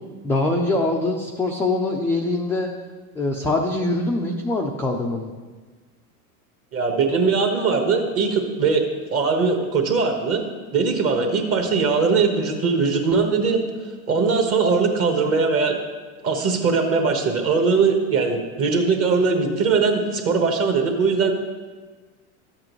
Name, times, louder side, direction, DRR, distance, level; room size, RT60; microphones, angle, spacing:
voice 1, 0.2-2.7 3.1-5.3, left 2 dB, 5° left, -1 dB, 0.4 m, -23 dB
voice 2, 6.7-10.4 10.7-13.6 14.1-15.8 16.2-21.3, right 4 dB, 30° right, 3 dB, 1.3 m, -20 dB
12.5 x 7.5 x 3.1 m, 1.4 s
supercardioid pair, 120°, 44 cm